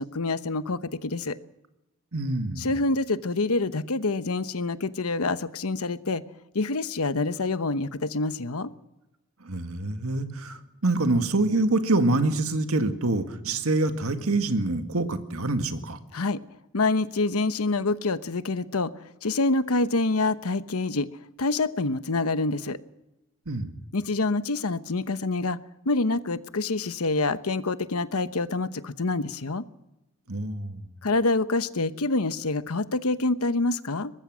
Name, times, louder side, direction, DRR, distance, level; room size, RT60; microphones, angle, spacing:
voice 1, 0.0-1.4 2.6-6.2 6.5-8.7 16.1-16.4 16.7-18.9 19.2-21.1 21.4-22.8 23.9-25.6 25.8-29.6 31.0-34.1, left 3 dB, 85° left, 13 dB, 1.0 m, -26 dB
voice 2, 2.1-2.7 9.4-16.0 23.5-23.8 30.3-30.8, right 2 dB, 80° right, 8 dB, 1.9 m, -26 dB
23.0 x 20.0 x 6.3 m, 0.97 s
head